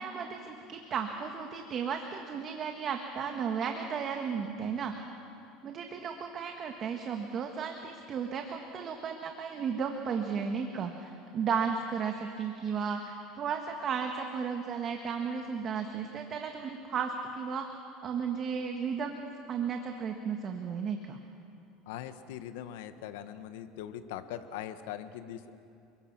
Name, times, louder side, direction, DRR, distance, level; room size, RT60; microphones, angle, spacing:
voice 1, 0.0-4.9 5.6-17.6 18.0-21.2, right 6 dB, 35° right, 4 dB, 1.6 m, -34 dB
voice 2, 21.9-25.6, left 10 dB, 85° left, 10 dB, 1.4 m, -41 dB
29.5 x 22.0 x 6.1 m, 2.6 s
supercardioid pair, 135°, 0 cm